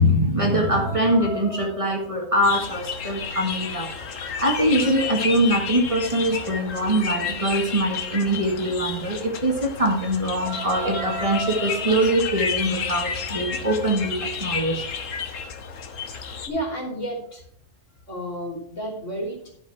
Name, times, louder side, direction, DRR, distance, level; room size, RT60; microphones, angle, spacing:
voice 1, 0.0-3.9 4.4-14.8, equal, 25° right, 0 dB, 1.6 m, -23 dB
sound 1, 2.4-16.5, left 6 dB, 85° left, 1.3 m, -31 dB
voice 2, 16.5-17.4 18.1-19.5, right 1 dB, 70° left, -2 dB, 3.2 m, -31 dB
11.5 x 5.5 x 4.6 m, 0.67 s
omnidirectional pair, 1.3 m